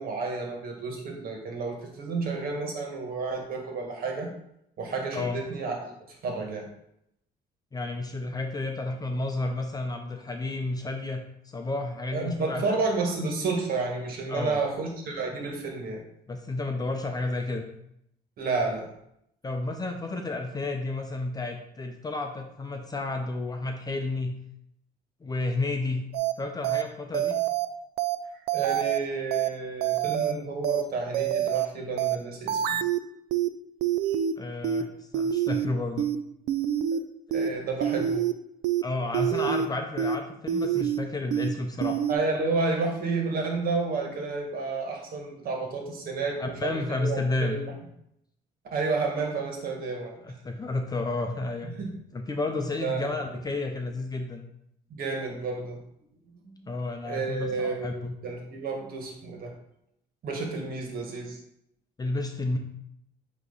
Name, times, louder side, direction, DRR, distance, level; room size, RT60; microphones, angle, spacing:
voice 1, 0.0-4.3 4.8-6.7 12.1-16.0 18.4-18.9 28.3-32.8 34.1-34.2 36.9-37.0 37.3-38.3 42.1-47.7 48.7-50.1 51.8-51.9 52.8-53.1 54.9-55.8 56.3-56.5 57.0-59.5 60.2-61.4, right 3 dB, 60° right, 1 dB, 1.7 m, -31 dB
voice 2, 7.7-12.8 14.3-14.6 16.3-17.7 19.4-24.3 25.2-26.0 26.4-27.4 34.4-36.1 38.8-42.0 46.4-47.6 50.2-51.7 52.1-54.4 56.7-58.1 62.0-62.6, left 2 dB, 25° left, 3 dB, 0.7 m, -31 dB
sound 1, 26.1-26.3 26.6-26.8 27.1-27.7 28.0-28.2 28.5-29.0 29.3-29.5 29.8-30.3 30.6-30.8 31.1-31.7 32.0-32.2 32.5-33.0 33.3-33.5 33.8-34.3 34.6-34.8 35.1-35.7 36.0-36.2 36.5-37.0 37.3-37.5 37.8-38.3 38.6-38.8 39.1-39.7 40.0-40.2 40.5-41.0 41.3-41.5 41.8-42.1, right 10 dB, 85° right, 0.4 m, -26 dB
8.3 x 3.1 x 4.0 m, 0.76 s
cardioid pair, 110°, 17 cm